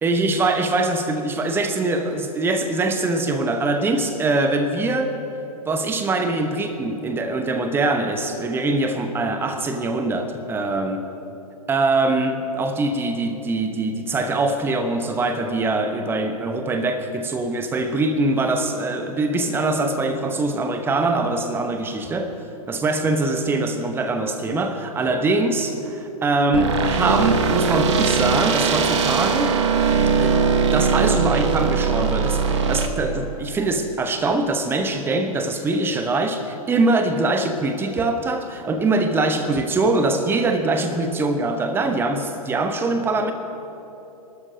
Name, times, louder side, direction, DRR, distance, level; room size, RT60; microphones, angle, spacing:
voice 1, 0.0-5.2 5.7-11.0 11.7-22.3 22.7-29.6 30.2-30.4 30.6-43.3, right 2 dB, 10° right, 1.0 m, -23 dB
sound 1, 26.5-32.9, right 5 dB, 50° right, 1.2 m, -20 dB
28.0 x 12.5 x 2.8 m
figure-of-eight pair, 110°, 19 cm